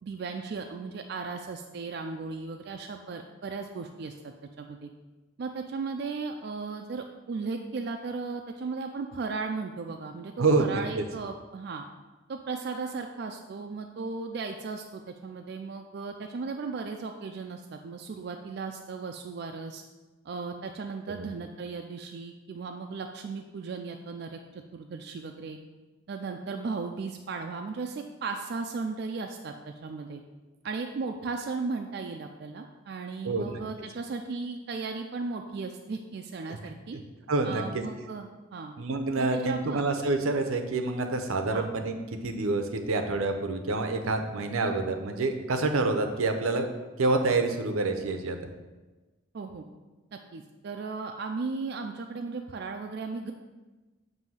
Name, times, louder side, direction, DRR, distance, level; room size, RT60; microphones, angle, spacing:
voice 1, 0.0-4.1 4.6-4.9 5.4-11.9 12.3-19.8 20.2-25.6 26.1-30.2 30.6-37.0 37.4-38.7 39.2-39.8 41.5-41.7 49.3-49.7 50.1-53.3, right 4 dB, 50° right, 4 dB, 0.3 m, -36 dB
voice 2, 10.4-11.0 21.2-21.3 33.2-33.6 36.5-37.0 37.3-37.8 38.8-41.9 42.2-46.7 47.0-48.4, right 3 dB, 85° right, 6 dB, 0.6 m, -27 dB
7.6 x 2.7 x 5.5 m, 1.2 s
head